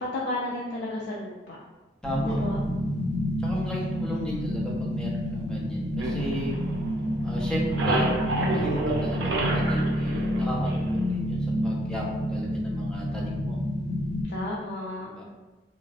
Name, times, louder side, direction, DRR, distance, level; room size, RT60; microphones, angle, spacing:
voice 1, 0.0-1.6 2.3-2.6 3.5-3.7 14.3-15.2, left 1 dB, 65° left, -5 dB, 0.4 m, -33 dB
sound 1, 2.0-14.2, equal, 20° left, 1.3 m, -28 dB
voice 2, 2.0-2.7 3.4-6.5 7.2-13.6 15.0-15.2, equal, 5° left, -5 dB, 0.5 m, -36 dB
sound 2, 6.0-7.1 7.4-11.1, right 2 dB, 75° right, 0.5 m, -29 dB
3.0 x 2.5 x 2.4 m, 1.2 s
head